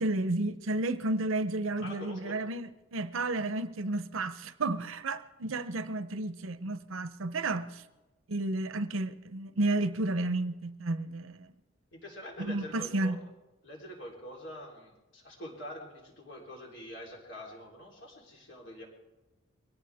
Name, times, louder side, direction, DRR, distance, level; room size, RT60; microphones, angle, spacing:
voice 1, 0.0-7.8 8.3-11.4 12.4-13.2, right 2 dB, 85° right, 0.7 m, -32 dB
voice 2, 1.8-2.4 11.9-13.2 13.6-18.9, equal, 65° left, 3.8 m, -45 dB
22.5 x 17.5 x 3.5 m
head